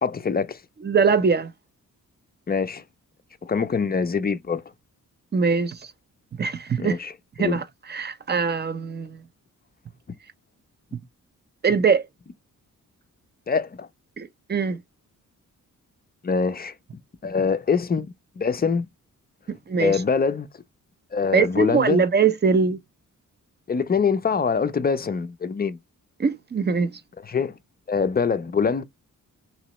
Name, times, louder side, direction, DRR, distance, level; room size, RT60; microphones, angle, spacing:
voice 1, 0.0-0.6 2.5-2.8 3.4-4.6 6.8-7.1 7.4-7.6 13.5-13.9 16.2-16.7 17.2-18.9 19.8-20.5 21.1-22.0 23.7-25.8 27.2-27.6 27.9-28.8, left 5 dB, 30° left, 0.4 m, -24 dB
voice 2, 0.8-1.5 5.3-5.8 6.4-7.0 7.4-9.2 11.6-12.0 14.2-14.8 19.5-20.0 21.3-22.8 26.2-27.0, right 5 dB, 30° right, 0.5 m, -22 dB
3.0 x 3.0 x 2.9 m
wide cardioid pair, 110°, 34 cm